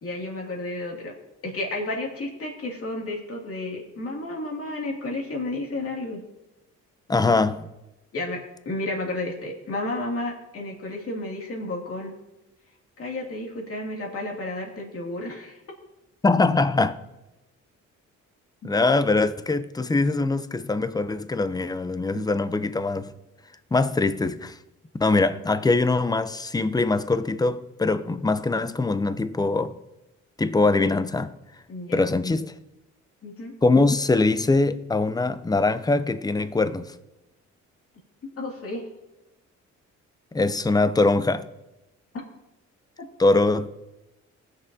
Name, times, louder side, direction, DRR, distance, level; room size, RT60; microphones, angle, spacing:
voice 1, 0.0-1.1 1.4-6.2 8.1-12.1 13.0-15.6 22.1-22.2 31.7-32.0 33.2-33.5 38.2-38.8 43.0-43.1, left 2 dB, 50° left, 2.4 m, -32 dB
voice 2, 7.1-7.6 16.2-17.0 18.6-23.1 23.7-24.6 25.0-29.7 30.4-31.3 31.9-32.5 33.6-36.9 40.3-41.5 43.2-43.7, left 3 dB, 15° left, 0.5 m, -22 dB
19.5 x 6.6 x 2.7 m
cardioid pair, 90°, 30 cm